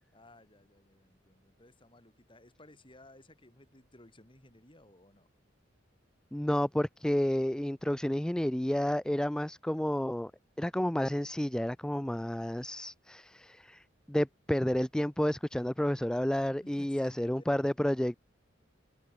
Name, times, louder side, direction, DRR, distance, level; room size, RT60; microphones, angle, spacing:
voice 1, 0.1-5.3 16.6-17.7, left 1 dB, 25° left, 4.0 m, -58 dB
voice 2, 6.3-10.3 10.6-18.2, equal, 5° left, 0.3 m, -30 dB
head